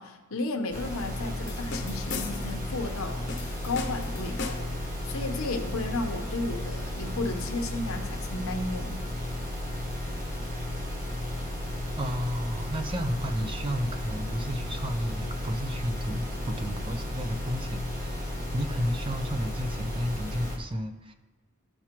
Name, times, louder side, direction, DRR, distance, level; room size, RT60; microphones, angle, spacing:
voice 1, 0.0-3.3 3.6-4.6 5.0-9.0, left 2 dB, 85° left, 5 dB, 0.9 m, -33 dB
sound 1, 0.7-20.6, left 1 dB, 40° right, 1.5 m, -34 dB
sound 2, 1.5-2.6 3.3-4.8, left 4 dB, 60° left, 0.8 m, -37 dB
voice 2, 12.0-21.1, equal, 25° right, 6 dB, 0.6 m, -32 dB
13.5 x 4.8 x 3.0 m, 1.3 s
head